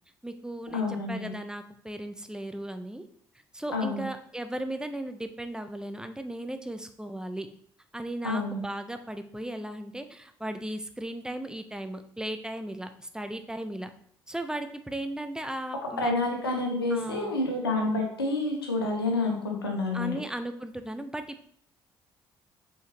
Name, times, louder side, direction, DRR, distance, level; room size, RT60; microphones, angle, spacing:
voice 1, 0.2-3.0 3.5-7.5 7.9-13.9 14.3-16.1 16.9-17.3 19.9-21.5, right 1 dB, 5° right, 8 dB, 0.8 m, -36 dB
voice 2, 0.7-1.3 3.7-4.0 8.2-8.6 16.0-20.2, left 2 dB, 90° left, 1 dB, 1.2 m, -28 dB
7.5 x 5.2 x 3.0 m, 0.64 s
figure-of-eight pair, 50°, 12 cm